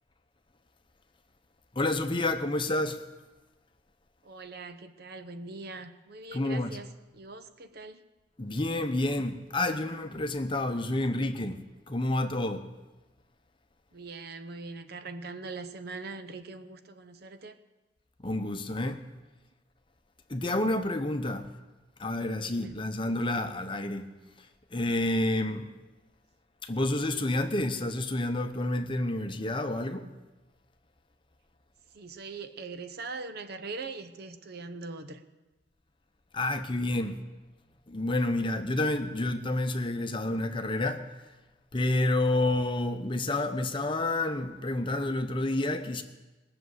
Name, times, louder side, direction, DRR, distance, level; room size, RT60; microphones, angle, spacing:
voice 1, 1.7-3.0 6.3-6.8 8.4-12.7 18.2-19.0 20.3-21.5 22.0-24.1 24.7-25.7 26.6-30.1 36.3-37.2 37.9-41.1 41.7-46.0, left 2 dB, 25° left, 0.8 m, -29 dB
voice 2, 4.2-8.0 13.9-17.6 22.5-22.8 31.9-35.2, right 3 dB, 55° right, 0.8 m, -42 dB
19.5 x 6.8 x 7.9 m
head